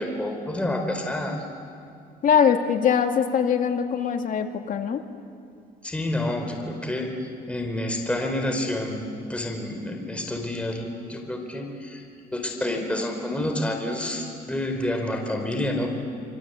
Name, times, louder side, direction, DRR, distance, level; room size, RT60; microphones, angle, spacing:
voice 1, 0.0-1.4 5.8-12.0 12.3-15.9, left 1 dB, 5° left, 3 dB, 4.7 m, -29 dB
voice 2, 2.2-5.0, left 7 dB, 55° left, 5 dB, 2.3 m, -22 dB
27.0 x 24.5 x 8.4 m, 2.5 s
cardioid pair, 110°, 17 cm